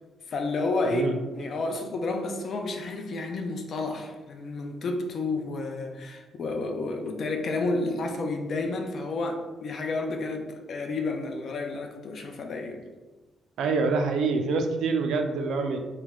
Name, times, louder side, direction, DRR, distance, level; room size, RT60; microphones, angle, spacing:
voice 1, 0.3-1.1 1.3-12.8, left 3 dB, 45° left, 3 dB, 0.5 m, -31 dB
voice 2, 0.8-1.1 13.6-15.8, right 4 dB, 75° right, 5 dB, 0.4 m, -26 dB
3.3 x 3.0 x 3.6 m, 1.2 s
cardioid pair, 155°, 0 cm